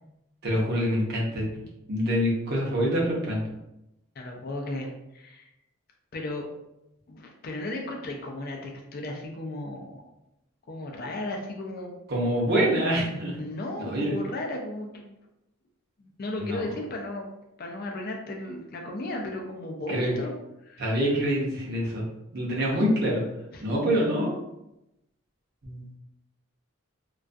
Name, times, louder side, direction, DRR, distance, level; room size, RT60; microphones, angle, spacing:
voice 1, 0.4-1.5 1.9-3.4 12.1-13.4 13.8-14.2 16.4-16.6 19.9-20.1 20.8-23.2 23.6-24.4 25.6-26.0, equal, 50° right, -3 dB, 0.6 m, -26 dB
voice 2, 4.2-5.5 6.1-6.5 7.1-10.0 10.7-11.9 13.4-15.1 16.0-17.3 17.6-20.3 20.6-21.0 23.5-23.6, left 1 dB, 45° left, 1 dB, 0.3 m, -35 dB
2.3 x 2.2 x 2.5 m, 0.89 s
head